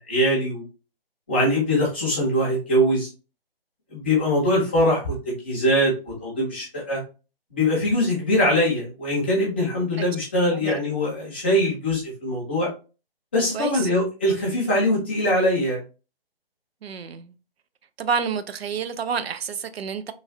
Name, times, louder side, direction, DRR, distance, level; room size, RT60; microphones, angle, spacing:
voice 1, 0.1-0.6 1.3-3.1 3.9-7.0 7.5-12.7 13.3-15.8, equal, 10° left, 0.5 m, -22 dB
voice 2, 13.5-13.9 16.8-17.3 18.0-20.1, right 6 dB, 85° right, 0.5 m, -29 dB
3.1 x 2.3 x 2.7 m
hypercardioid pair, 160°, 30 cm